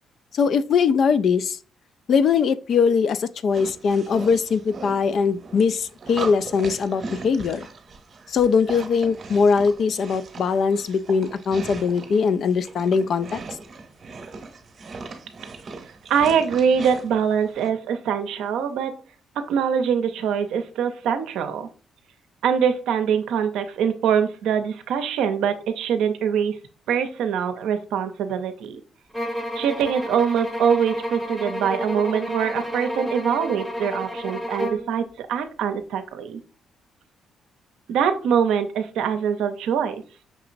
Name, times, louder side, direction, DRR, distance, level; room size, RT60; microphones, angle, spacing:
voice 1, 0.3-1.6 2.1-7.7 8.3-13.4, left 5 dB, 60° left, 0.3 m, -21 dB
sound 1, 3.5-17.7, right 4 dB, 45° right, 0.9 m, -39 dB
voice 2, 16.1-19.0 19.5-21.7 22.4-26.6 26.9-28.8 29.6-36.4 37.9-40.0, right 7 dB, 85° right, 0.5 m, -23 dB
sound 2, 29.1-34.9, equal, 5° left, 0.7 m, -30 dB
5.9 x 2.9 x 2.5 m
cardioid pair, 90°, 0 cm